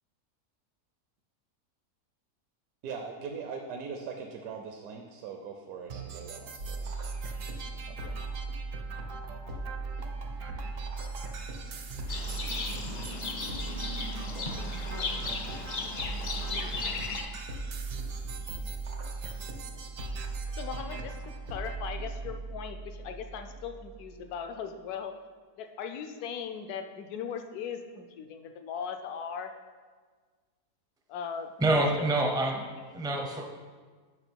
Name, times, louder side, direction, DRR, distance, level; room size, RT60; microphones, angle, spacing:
voice 1, 2.8-6.9 7.9-8.3, right 5 dB, 75° right, 3 dB, 1.1 m, -41 dB
sound 1, 5.9-21.9, right 5 dB, 55° right, 0.7 m, -45 dB
sound 2, 6.6-24.2, right 3 dB, 90° right, 1.7 m, -38 dB
Livestock farm animals working animals, 12.1-17.2, left 3 dB, 55° left, 0.4 m, -36 dB
voice 2, 20.6-25.2 25.6-29.5 31.1-33.0, left 7 dB, 75° left, 7 dB, 1.1 m, -39 dB
voice 3, 31.6-32.6 32.9-33.4, right 2 dB, 5° right, 1 dB, 0.3 m, -26 dB
7.9 x 5.6 x 4.5 m, 1.5 s
omnidirectional pair, 1.7 m